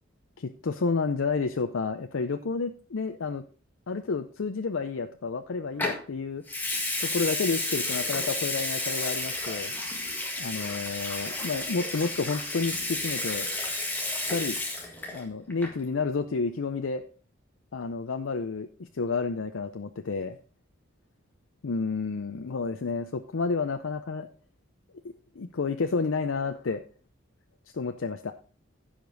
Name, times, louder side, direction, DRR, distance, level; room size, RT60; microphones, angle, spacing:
voice 1, 0.4-3.4 3.9-6.4 7.0-9.7 10.4-13.5 13.9-14.0 14.3-14.6 15.1-17.0 17.7-20.4 21.6-24.3 25.0-26.8 27.7-28.3, left 4 dB, 85° left, 7 dB, 0.6 m, -30 dB
Water tap faucet / Sink (filling or washing) / Liquid, 5.8-6.0 6.5-15.2 15.5-15.8, left 2 dB, 10° left, 1.7 m, -32 dB
15.5 x 5.1 x 3.9 m, 0.38 s
head